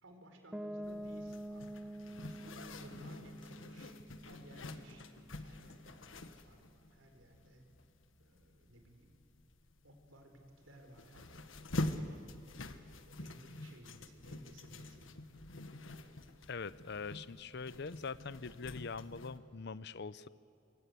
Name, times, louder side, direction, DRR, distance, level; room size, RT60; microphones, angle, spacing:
voice 1, 0.0-4.0 4.2-7.6 8.2-9.2 9.8-12.4 13.1-15.1, equal, 85° right, 4 dB, 4.7 m, -58 dB
Piano, 0.5-6.2, right 1 dB, 5° right, 1.0 m, -48 dB
Zipper (clothing), 0.8-19.4, left 1 dB, 80° left, 1.4 m, -46 dB
voice 2, 16.5-20.3, left 4 dB, 60° left, 17 dB, 0.7 m, -43 dB
26.0 x 25.0 x 8.4 m, 2.6 s
head